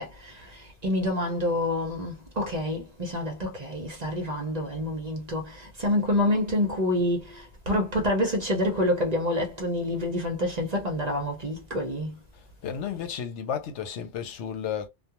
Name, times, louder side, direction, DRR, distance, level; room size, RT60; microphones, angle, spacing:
voice 1, 0.0-12.2, left 1 dB, 45° right, 0.7 m, -27 dB
voice 2, 12.3-14.9, left 8 dB, 80° left, 0.9 m, -33 dB
2.3 x 2.2 x 2.9 m
omnidirectional pair, 1.2 m